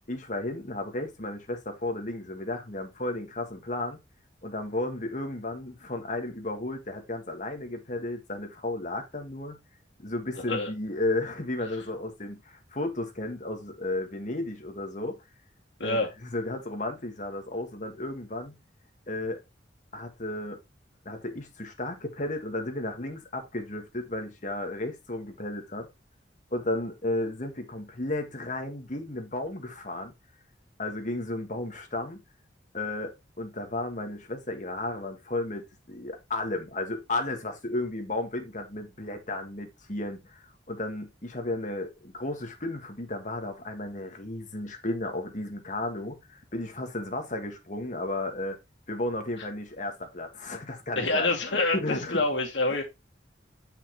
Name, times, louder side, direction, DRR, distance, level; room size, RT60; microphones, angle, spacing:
voice 1, 0.1-4.0 4.4-9.6 10.0-15.2 15.8-18.6 19.1-19.4 19.9-20.6 21.0-25.9 26.5-30.1 30.8-32.2 32.7-48.6 48.9-52.2, left 2 dB, 45° left, 1.6 m, -33 dB
voice 2, 51.0-52.8, left 2 dB, 85° left, 2.3 m, -26 dB
7.4 x 5.6 x 3.0 m
head